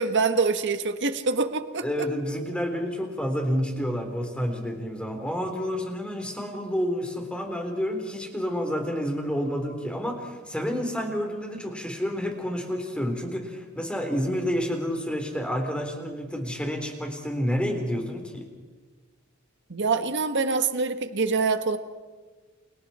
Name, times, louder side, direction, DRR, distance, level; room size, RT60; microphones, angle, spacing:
voice 1, 0.0-1.9 19.7-21.8, right 4 dB, 60° right, 8 dB, 1.6 m, -25 dB
voice 2, 1.8-18.4, equal, 5° left, 3 dB, 3.9 m, -29 dB
30.0 x 28.5 x 4.4 m, 1.4 s
head